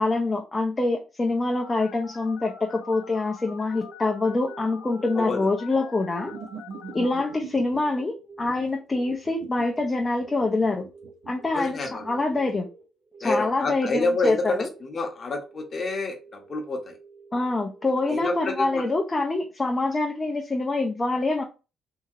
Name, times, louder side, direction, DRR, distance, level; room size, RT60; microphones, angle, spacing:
voice 1, 0.0-6.3 6.9-10.8 11.3-12.7 13.2-14.7 17.3-21.4, left 2 dB, 25° left, 0.5 m, -25 dB
Telephone, 1.6-7.4, left 7 dB, 80° left, 0.4 m, -45 dB
sound 1, 3.7-19.4, right 4 dB, 40° right, 1.4 m, -50 dB
voice 2, 5.1-5.5 11.5-12.0 13.2-17.0 18.1-18.9, left 2 dB, 45° left, 0.9 m, -28 dB
sound 2, 6.2-7.8 8.4-12.6, right 5 dB, 75° right, 0.6 m, -42 dB
2.8 x 2.7 x 2.4 m
cardioid pair, 90°, 0 cm